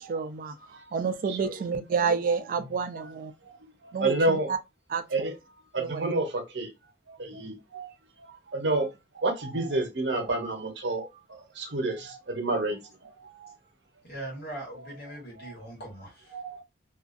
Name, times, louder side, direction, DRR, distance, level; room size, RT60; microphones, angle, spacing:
voice 1, 0.1-0.6 0.9-3.3 3.9-4.6 4.9-5.3 5.8-6.1, right 5 dB, 50° right, 0.3 m, -29 dB
voice 2, 1.3-1.6 2.9-3.0 3.4-3.5 3.8-4.5 5.1-5.3 5.7-6.7 7.1-7.9 8.5-13.5 15.4-15.5 16.3-16.6, right 2 dB, 75° right, 0.8 m, -30 dB
voice 3, 14.0-16.4, right 1 dB, 60° left, 1.2 m, -40 dB
2.4 x 2.3 x 2.4 m
head